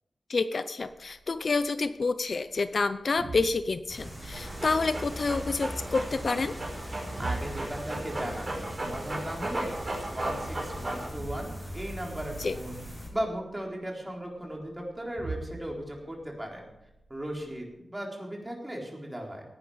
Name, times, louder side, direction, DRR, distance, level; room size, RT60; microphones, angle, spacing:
voice 1, 0.3-6.5 12.4-12.6, left 4 dB, 55° left, 11 dB, 0.6 m, -28 dB
sound 1, 0.8-17.6, right 3 dB, 65° right, 3.0 m, -46 dB
sound 2, 3.9-13.1, equal, 5° left, 6.4 m, -40 dB
Dog, 4.3-11.1, right 1 dB, 30° right, 5.3 m, -36 dB
voice 2, 7.2-12.8 13.1-16.7 17.1-19.4, right 1 dB, 15° right, -1 dB, 3.9 m, -37 dB
17.5 x 11.0 x 5.0 m, 0.89 s
wide cardioid pair, 115°, 0 cm